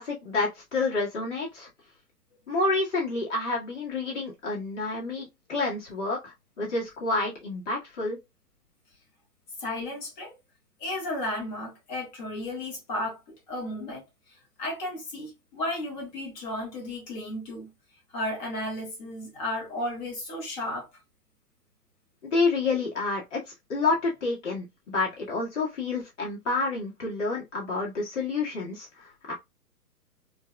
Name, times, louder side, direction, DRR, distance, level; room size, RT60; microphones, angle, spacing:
voice 1, 0.0-1.7 2.5-8.2 22.2-23.4 23.7-29.3, left 3 dB, 45° left, 1.9 m, -29 dB
voice 2, 9.6-10.4 10.8-13.2 13.5-14.0 14.3-17.7 18.1-20.9, left 1 dB, 30° left, 1.7 m, -34 dB
4.4 x 2.7 x 2.2 m
figure-of-eight pair, 125°, 48 cm